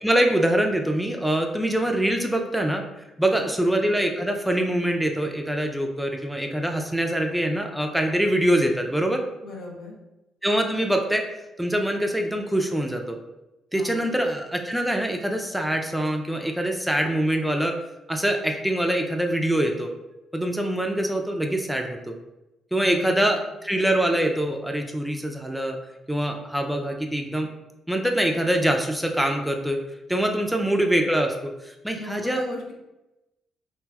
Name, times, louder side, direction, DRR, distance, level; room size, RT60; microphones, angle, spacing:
voice 1, 0.0-2.8 3.2-9.2 10.4-11.2 11.6-13.2 13.7-17.8 18.1-19.9 20.3-22.2 22.7-25.8 26.1-27.5 27.9-29.8 30.1-32.4, right 1 dB, 5° right, 3 dB, 0.4 m, -24 dB
voice 2, 9.4-10.0 13.7-14.1 22.8-23.5 31.9-32.7, left 3 dB, 65° left, 0 dB, 0.6 m, -39 dB
2.6 x 2.2 x 3.3 m, 0.96 s
hypercardioid pair, 50°, 0 cm